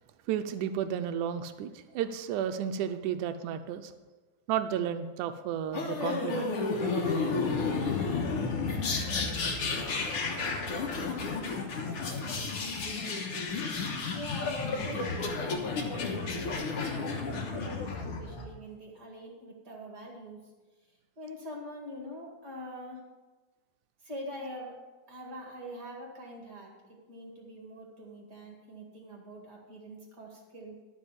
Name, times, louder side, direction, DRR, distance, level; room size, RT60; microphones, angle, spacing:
voice 1, 0.3-3.9 4.5-6.5 13.6-13.7, right 9 dB, 85° right, 9 dB, 1.8 m, -32 dB
sound 1, 5.7-18.4, left 4 dB, 60° left, 1.5 m, -32 dB
voice 2, 14.1-20.4 21.2-23.0 24.0-24.8 25.1-26.7 27.1-30.8, equal, 35° right, -1 dB, 2.0 m, -44 dB
12.0 x 5.3 x 7.3 m, 1.3 s
omnidirectional pair, 4.1 m